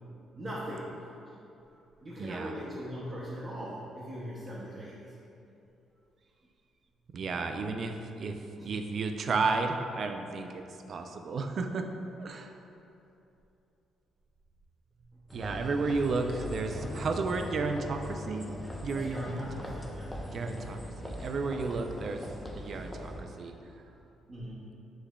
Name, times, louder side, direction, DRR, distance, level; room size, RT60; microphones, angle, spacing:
voice 1, 0.3-1.4 2.0-5.1 8.5-8.7 18.9-20.7 24.3-24.8, equal, 35° right, -7 dB, 0.7 m, -40 dB
voice 2, 2.2-2.5 7.1-10.5 10.9-11.8 12.2-12.5 15.3-18.5 18.8-19.5 20.3-22.2 22.5-23.1 23.4-23.5, right 4 dB, 55° right, 5 dB, 0.3 m, -32 dB
airport ambience, 15.3-23.2, equal, 5° left, 0.5 m, -40 dB
6.4 x 3.4 x 2.3 m, 2.8 s
cardioid pair, 90°, 0 cm